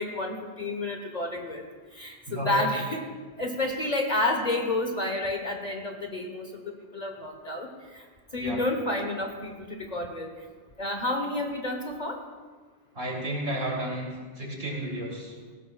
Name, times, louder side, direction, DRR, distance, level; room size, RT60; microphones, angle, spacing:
voice 1, 0.0-1.6 1.9-3.0 3.4-8.0 8.3-10.3 10.8-12.2, left 2 dB, 35° left, 3 dB, 1.1 m, -30 dB
voice 2, 2.3-2.6 8.4-8.6 12.9-14.1 14.4-15.3, right 1 dB, 55° right, -3 dB, 3.3 m, -32 dB
18.5 x 16.0 x 2.3 m, 1.5 s
omnidirectional pair, 1.2 m